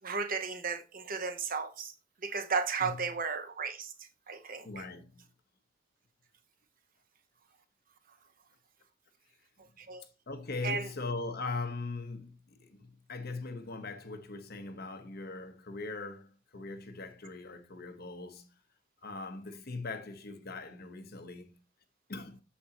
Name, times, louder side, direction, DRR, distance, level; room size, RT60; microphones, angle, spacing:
voice 1, 0.0-1.9 2.2-3.9 4.3-4.7 9.9-10.0 10.6-10.9, right 5 dB, 45° right, 0.9 m, -34 dB
voice 2, 2.8-3.2 4.6-5.2 10.3-18.5 19.0-21.6 22.1-22.4, left 3 dB, 50° left, 1.1 m, -40 dB
8.8 x 7.2 x 2.9 m
head